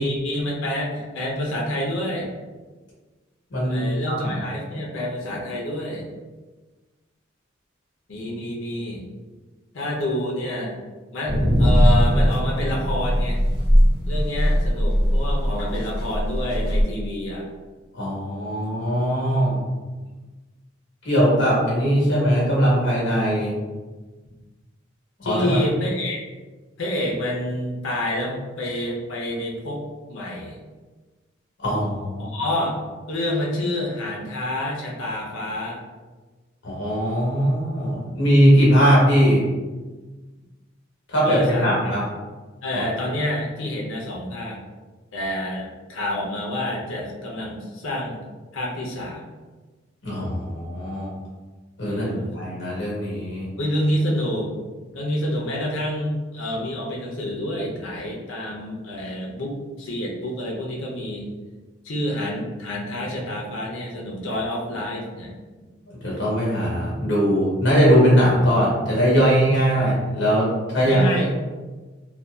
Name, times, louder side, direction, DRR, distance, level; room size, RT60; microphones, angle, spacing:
voice 1, 0.0-2.3 3.7-6.1 8.1-9.0 9.7-10.8 11.1-13.4 14.1-17.5 25.2-26.2 26.8-30.6 32.2-32.8 33.1-35.8 41.2-42.0 42.6-44.6 45.1-48.2 48.5-49.2 51.8-52.4 53.6-54.6 54.9-61.3 61.8-65.3 70.8-71.3, left 1 dB, 80° left, -2 dB, 0.6 m, -28 dB
voice 2, 3.5-4.4 17.9-19.6 21.0-23.5 25.2-25.6 31.6-32.3 36.6-39.4 41.1-42.0 50.0-51.1 51.8-52.1 52.3-53.5 65.9-71.0, equal, 65° left, -5 dB, 1.0 m, -20 dB
sound 1, 11.3-16.8, equal, 50° right, 1.1 m, -19 dB
2.6 x 2.2 x 2.2 m, 1.3 s
head